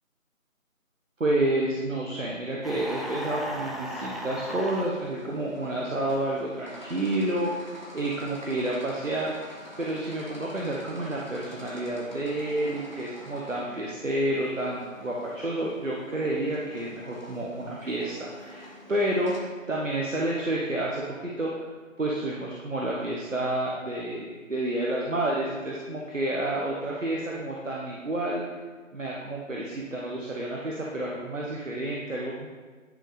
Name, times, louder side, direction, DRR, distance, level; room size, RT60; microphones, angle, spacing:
voice 1, 1.2-7.5 7.9-21.5 22.0-28.4 28.9-32.5, right 1 dB, 65° right, -3 dB, 1.3 m, -30 dB
sound 1, 2.6-4.9, equal, ahead, 0.4 m, -36 dB
sound 2, 4.7-19.4, left 1 dB, 35° right, 1.0 m, -47 dB
10.0 x 4.0 x 5.0 m, 1.4 s
figure-of-eight pair, 170°, 41 cm